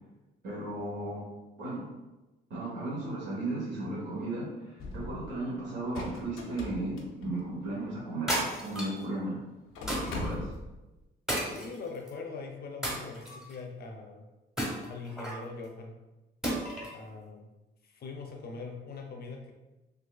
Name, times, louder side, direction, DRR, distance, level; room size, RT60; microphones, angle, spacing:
voice 1, 0.4-1.2 1.6-1.8 2.5-9.4 9.9-10.4, right 2 dB, 65° right, -7 dB, 1.2 m, -35 dB
sound 1, 4.8-5.4 5.7-7.8 8.7-8.8 9.0-9.1 9.6-10.8, left 2 dB, 90° left, 0.6 m, -39 dB
sound 2, 8.3-9.0 9.9-10.3 11.3-12.1 12.8-13.6 14.6-15.4 16.4-17.0, right 1 dB, 5° right, 1.0 m, -33 dB
voice 2, 11.5-14.2 14.9-15.9 16.9-17.5 17.8-19.5, left 4 dB, 50° left, 2 dB, 0.7 m, -42 dB
4.0 x 2.6 x 2.4 m, 1.1 s
cardioid pair, 90°, 20 cm